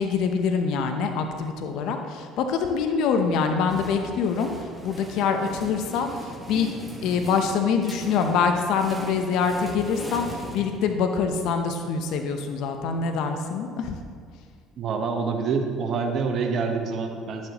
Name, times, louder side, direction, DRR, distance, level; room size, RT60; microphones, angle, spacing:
voice 1, 0.0-4.5 4.8-6.7 7.0-14.0, left 5 dB, 70° left, 5 dB, 0.7 m, -25 dB
sound 1, 3.3-11.2, right 1 dB, 10° right, 1.3 m, -40 dB
voice 2, 14.8-17.5, right 5 dB, 55° right, 4 dB, 1.1 m, -26 dB
11.0 x 7.3 x 3.0 m, 2.1 s
hypercardioid pair, 70°, 0 cm